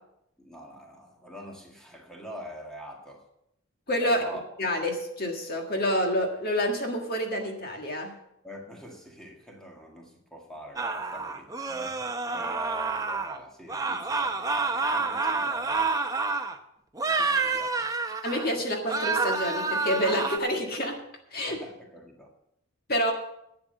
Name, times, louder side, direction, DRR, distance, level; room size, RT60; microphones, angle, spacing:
voice 1, 0.4-3.3 4.0-4.4 8.4-15.9 17.0-17.7 21.5-22.3, equal, ahead, -1 dB, 1.9 m, -44 dB
voice 2, 3.9-4.2 4.6-8.1 18.2-21.0 21.3-21.6 22.9-23.1, equal, 45° left, 2 dB, 1.7 m, -28 dB
sound 1, 10.8-13.4 13.7-16.6 17.0-18.5 18.9-20.4, right 4 dB, 15° right, 0.7 m, -28 dB
11.5 x 8.7 x 6.6 m, 0.80 s
head